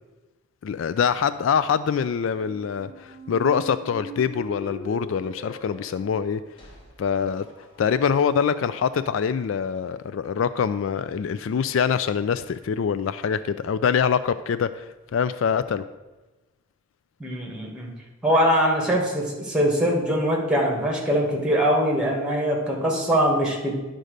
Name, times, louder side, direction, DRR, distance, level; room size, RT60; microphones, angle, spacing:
voice 1, 0.6-6.4 7.0-7.5 7.8-15.8, left 7 dB, 65° left, 14 dB, 0.3 m, -24 dB
sound 1, 2.3-8.2, equal, 25° left, 3.2 m, -42 dB
voice 2, 17.2-17.9 18.2-23.7, equal, 5° right, -1 dB, 1.9 m, -22 dB
10.5 x 3.8 x 6.6 m, 1.1 s
head